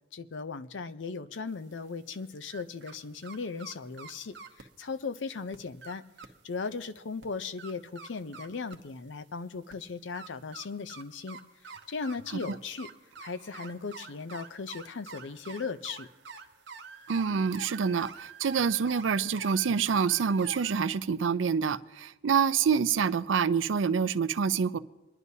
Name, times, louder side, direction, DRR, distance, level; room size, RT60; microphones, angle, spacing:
voice 1, 0.1-6.0 6.4-11.4 11.6-12.9 13.2-16.1, left 4 dB, 75° left, 12 dB, 0.6 m, -37 dB
sound 1, 1.5-3.0 3.2-4.6 5.2-5.3 5.5-6.3 6.7-6.8 7.2-8.9 9.6-20.9, right 4 dB, 65° right, 0.9 m, -46 dB
voice 2, 17.1-24.8, right 6 dB, 85° right, 15 dB, 0.5 m, -27 dB
26.5 x 11.0 x 2.7 m, 1.1 s
head